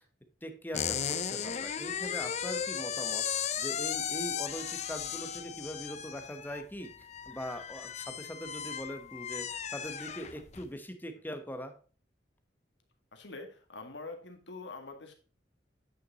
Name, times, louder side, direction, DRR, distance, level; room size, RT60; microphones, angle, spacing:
voice 1, 0.4-11.7, equal, 10° left, 8 dB, 1.0 m, -42 dB
sound 1, 0.7-10.7, left 8 dB, 40° left, 0.5 m, -36 dB
voice 2, 13.1-15.1, left 3 dB, 85° left, 5 dB, 1.8 m, -45 dB
9.2 x 6.0 x 3.9 m, 0.38 s
head